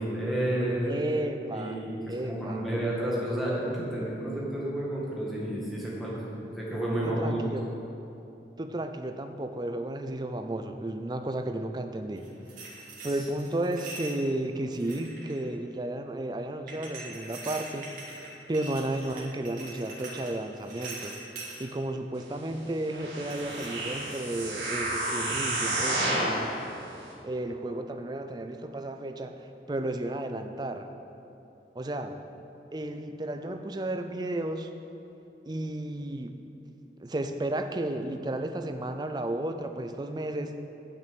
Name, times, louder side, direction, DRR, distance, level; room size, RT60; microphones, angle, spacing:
voice 1, 0.0-0.9 1.5-6.2 6.5-7.4, right 1 dB, ahead, -7 dB, 2.0 m, -31 dB
voice 2, 0.9-1.8 2.1-2.6 7.0-7.6 8.6-12.3 13.0-18.2 18.5-21.2 21.6-26.5 27.2-30.9 31.8-32.2 32.7-34.7 35.5-36.4 37.0-40.6, right 1 dB, 25° right, 7 dB, 0.4 m, -33 dB
sound 1, 12.2-14.2 14.7-15.5 16.7-21.7 23.3-24.7 25.1-25.3, right 2 dB, 50° right, 1.8 m, -43 dB
sound 2, 22.9-26.4 27.0-27.1, right 2 dB, 80° right, 2.1 m, -30 dB
9.3 x 6.0 x 7.1 m, 2.9 s
head